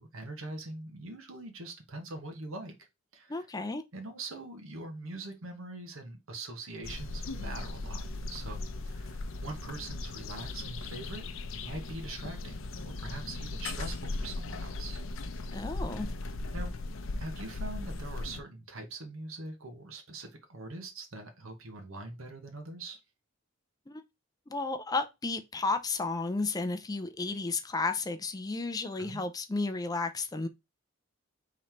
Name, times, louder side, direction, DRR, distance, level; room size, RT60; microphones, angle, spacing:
voice 1, 0.0-2.9 3.1-3.5 3.9-15.0 16.5-16.7 17.2-23.0 29.0-29.2, right 2 dB, 80° right, 1.0 m, -43 dB
voice 2, 3.3-3.8 15.5-16.1 23.9-24.0 24.5-30.5, left 3 dB, 20° left, 0.4 m, -33 dB
sound 1, 6.8-18.4, left 2 dB, 75° left, 0.6 m, -38 dB
3.8 x 3.1 x 4.3 m
head